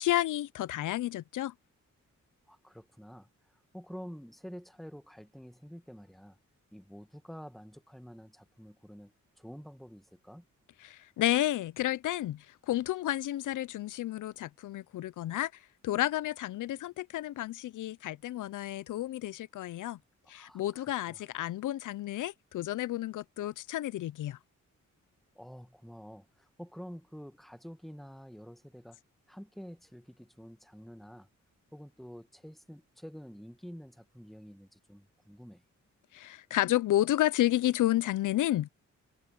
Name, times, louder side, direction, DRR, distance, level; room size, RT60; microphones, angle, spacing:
voice 1, 0.0-1.5 10.8-20.0 20.3-24.4 36.1-38.7, left 14 dB, 85° left, 0.5 m, -31 dB
voice 2, 2.5-6.4 6.7-10.4 20.3-21.2 25.3-29.0 29.3-31.3 31.7-35.6, equal, ahead, 1.5 m, -48 dB
cardioid pair, 95°, 30 cm